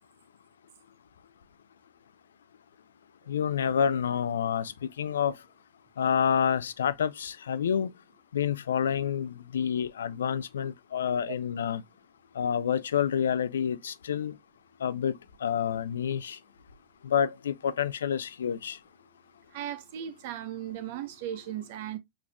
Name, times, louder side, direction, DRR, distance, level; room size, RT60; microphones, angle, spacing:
voice 1, 3.3-5.3 6.0-7.9 8.3-11.8 12.4-14.4 14.8-16.4 17.0-18.8, left 8 dB, 80° left, 0.4 m, -28 dB
voice 2, 19.5-22.0, right 11 dB, 60° right, 0.8 m, -37 dB
6.3 x 3.3 x 2.3 m
hypercardioid pair, 95°, 0 cm